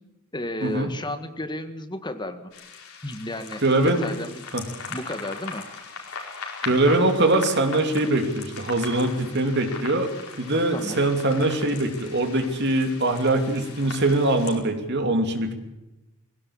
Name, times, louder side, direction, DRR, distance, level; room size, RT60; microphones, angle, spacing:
voice 1, 0.3-2.5 3.0-4.5 4.9-5.7 10.7-11.0, left 1 dB, 20° left, 8 dB, 1.7 m, -33 dB
sound 1, 2.5-14.6, left 5 dB, 80° left, 4.9 m, -39 dB
voice 2, 3.6-4.0 4.5-4.6 6.6-10.1 10.4-15.5, right 2 dB, 50° right, 5 dB, 2.9 m, -22 dB
20.5 x 17.0 x 8.8 m, 0.99 s
head